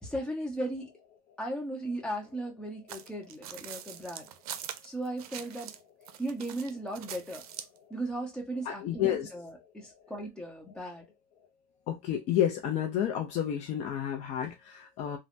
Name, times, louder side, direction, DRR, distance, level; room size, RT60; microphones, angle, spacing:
voice 1, 0.0-0.9 1.4-4.3 4.8-5.7 6.2-7.4 7.9-11.1, right 1 dB, 5° left, 0.9 m, -36 dB
sound 1, 2.9-5.8 6.1-7.8, right 9 dB, 90° right, 0.5 m, -43 dB
voice 2, 8.6-9.3 11.9-15.2, left 10 dB, 40° left, 0.5 m, -30 dB
3.3 x 2.0 x 2.6 m
supercardioid pair, 135°, 19 cm